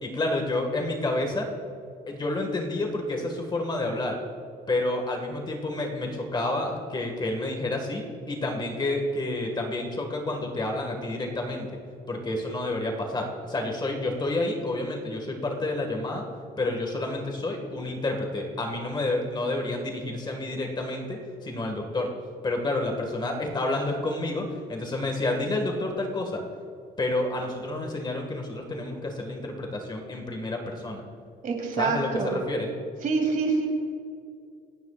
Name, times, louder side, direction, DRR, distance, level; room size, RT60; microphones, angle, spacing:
voice 1, 0.0-1.5 2.1-4.2 4.7-11.8 12.1-16.3 16.6-22.2 22.4-26.4 27.0-31.0 31.8-32.7, left 2 dB, 25° left, 3 dB, 1.8 m, -29 dB
voice 2, 31.4-32.4 33.0-33.7, right 4 dB, 50° right, 0 dB, 3.4 m, -26 dB
27.0 x 9.6 x 2.5 m, 2.4 s
cardioid pair, 110°, 17 cm